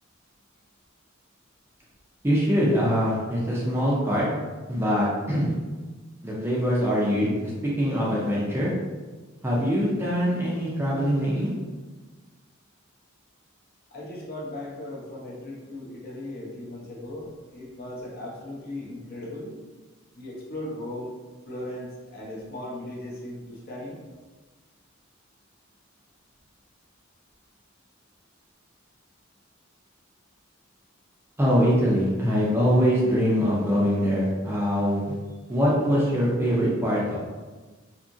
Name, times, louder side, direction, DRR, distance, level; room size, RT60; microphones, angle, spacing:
voice 1, 2.2-4.3 4.7-5.5 6.2-7.5 7.8-8.7 9.4-11.5 31.4-35.1 35.5-37.2, equal, 10° right, -5 dB, 0.4 m, -23 dB
voice 2, 13.9-19.6 20.1-21.1 21.4-24.0, left 1 dB, 45° left, -5 dB, 0.7 m, -37 dB
2.8 x 2.4 x 2.6 m, 1.3 s
head